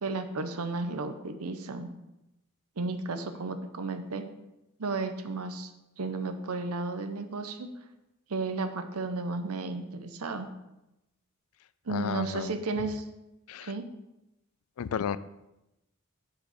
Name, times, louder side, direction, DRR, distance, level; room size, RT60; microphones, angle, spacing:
voice 1, 0.0-1.9 2.8-4.2 4.8-5.7 6.0-7.7 8.3-10.5 11.9-13.0 13.6-13.8, right 3 dB, 90° right, 9 dB, 0.7 m, -33 dB
voice 2, 11.9-12.6 13.5-13.7 14.8-15.2, left 7 dB, 75° left, 16 dB, 0.4 m, -32 dB
6.8 x 5.0 x 5.7 m, 0.93 s
head